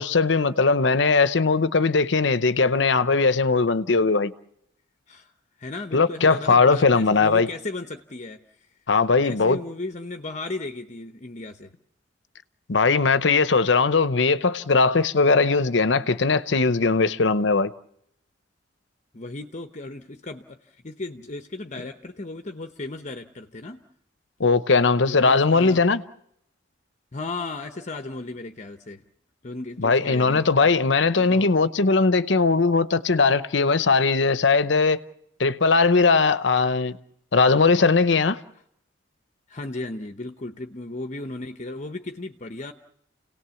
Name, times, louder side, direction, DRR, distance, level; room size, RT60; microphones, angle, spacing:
voice 1, 0.0-4.3 5.9-7.5 8.9-9.6 12.7-17.7 24.4-26.0 29.8-35.0 35.4-37.0 37.3-38.4, left 4 dB, 65° left, 0.8 m, -19 dB
voice 2, 5.6-8.7 9.2-11.7 19.1-23.8 25.0-25.9 27.1-29.0 29.4-30.7 31.1-31.5 39.5-42.7, left 2 dB, 40° left, 0.9 m, -35 dB
29.5 x 18.0 x 7.1 m
head